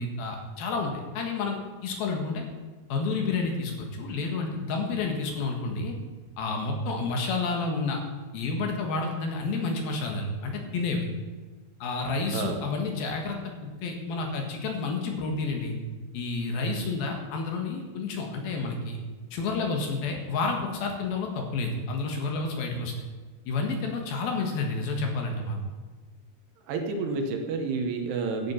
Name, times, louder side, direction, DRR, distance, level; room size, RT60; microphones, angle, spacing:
voice 1, 0.0-2.4 2.9-5.9 6.4-8.0 8.3-11.1 11.8-13.4 13.8-15.8 16.1-19.0 19.3-22.9 23.5-25.6, left 3 dB, 65° left, 2 dB, 3.2 m, -30 dB
voice 2, 26.7-28.5, right 4 dB, 75° right, 3 dB, 3.3 m, -29 dB
13.0 x 8.8 x 5.5 m, 1.3 s
omnidirectional pair, 4.8 m